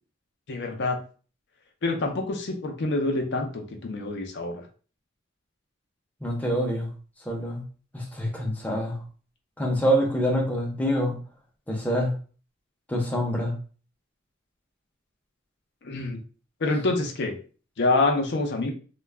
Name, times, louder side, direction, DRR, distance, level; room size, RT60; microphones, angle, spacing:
voice 1, 0.5-1.0 1.8-4.6 15.8-16.2 16.6-17.3 17.8-18.7, left 2 dB, 60° left, 3 dB, 0.5 m, -26 dB
voice 2, 6.2-6.9 7.3-7.6 7.9-9.0 9.6-11.2 11.7-12.1 12.9-13.5, equal, 10° left, -1 dB, 0.6 m, -26 dB
2.2 x 2.0 x 3.3 m, 0.39 s
head